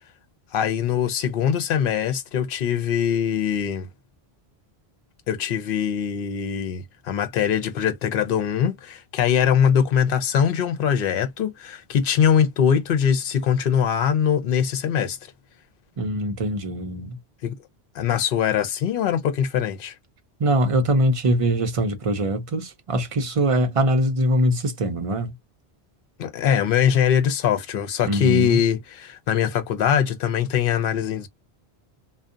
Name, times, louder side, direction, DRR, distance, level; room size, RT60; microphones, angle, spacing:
voice 1, 0.5-3.9 5.3-15.2 17.4-17.6 17.9-19.9 26.2-31.3, left 8 dB, 65° left, 0.7 m, -22 dB
voice 2, 16.0-17.2 20.4-25.3 28.0-28.6, right 1 dB, 45° right, 0.5 m, -22 dB
2.7 x 2.1 x 2.4 m
omnidirectional pair, 1.1 m